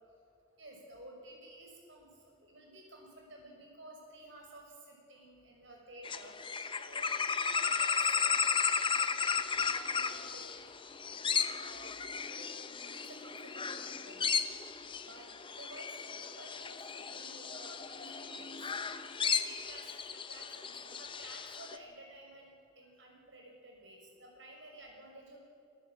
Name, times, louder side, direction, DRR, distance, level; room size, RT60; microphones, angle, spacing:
voice 1, 0.6-2.1 2.4-6.4 6.8-8.4 8.8-10.5 11.0-12.5 12.8-14.2 15.0-18.7 19.2-25.4, right 1 dB, 60° right, 0 dB, 6.2 m, -53 dB
sound 1, 6.0-21.8, left 6 dB, 25° left, 0.8 m, -35 dB
26.0 x 13.5 x 9.1 m, 2.4 s
head